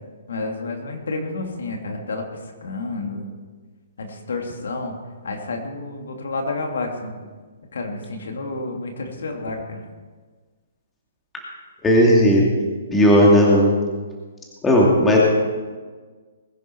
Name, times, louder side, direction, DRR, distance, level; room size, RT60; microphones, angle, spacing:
voice 1, 0.3-2.2 2.6-3.3 4.0-4.9 5.2-7.1 7.7-9.8, left 3 dB, 80° left, 2 dB, 3.0 m, -30 dB
voice 2, 11.8-12.4 12.9-13.7 14.6-15.2, equal, 10° left, -3 dB, 2.6 m, -14 dB
21.0 x 10.0 x 4.8 m, 1.4 s
hypercardioid pair, 165°, 0 cm